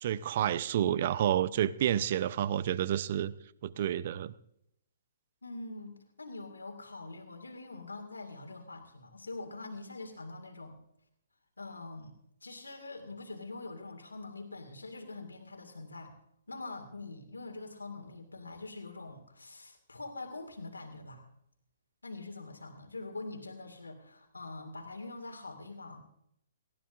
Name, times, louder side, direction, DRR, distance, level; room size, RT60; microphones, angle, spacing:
voice 1, 0.0-3.3 3.6-4.3, right 10 dB, 50° right, 17 dB, 0.6 m, -29 dB
voice 2, 5.4-10.8 11.6-12.1 12.4-16.1 16.5-21.3 22.0-26.0, left 3 dB, 85° left, 4 dB, 2.1 m, -44 dB
19.0 x 15.0 x 2.5 m, 0.73 s
figure-of-eight pair, 125°, 0 cm